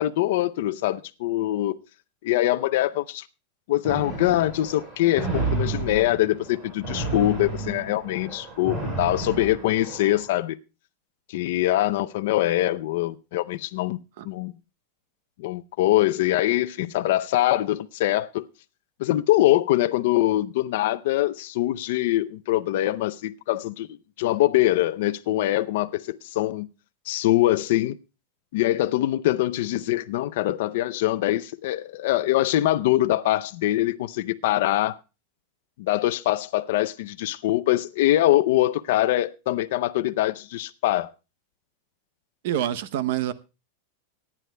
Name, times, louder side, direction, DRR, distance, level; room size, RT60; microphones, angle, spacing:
voice 1, 0.0-1.8 2.2-3.2 3.7-10.6 11.3-14.5 15.4-18.5 19.0-26.7 27.1-28.0 28.5-35.0 35.8-41.1, left 15 dB, 60° left, 0.5 m, -23 dB
sound 1, 3.8-10.3, right 3 dB, 20° right, 4.4 m, -31 dB
voice 2, 42.4-43.3, right 11 dB, 60° right, 0.7 m, -26 dB
24.5 x 9.8 x 2.2 m
supercardioid pair, 165°, 0 cm